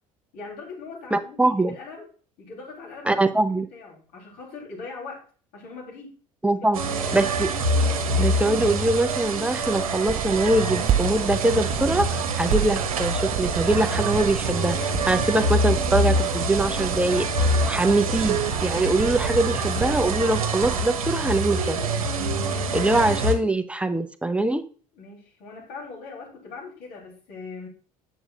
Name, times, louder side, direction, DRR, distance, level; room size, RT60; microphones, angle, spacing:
voice 1, 0.3-2.1 2.4-5.2 5.5-6.1 6.5-7.3 24.9-27.7, left 4 dB, 60° left, -2 dB, 3.4 m, -41 dB
voice 2, 1.1-1.7 3.1-3.7 6.4-6.8 7.1-7.5 8.2-17.3 17.7-21.8 22.7-24.6, right 2 dB, 5° right, 10 dB, 0.7 m, -23 dB
sound 1, 6.7-23.3, right 2 dB, 80° right, 1.0 m, -25 dB
sound 2, 9.7-20.8, right 10 dB, 40° right, 0.4 m, -31 dB
8.0 x 7.3 x 2.5 m, 0.42 s
figure-of-eight pair, 65°, 18 cm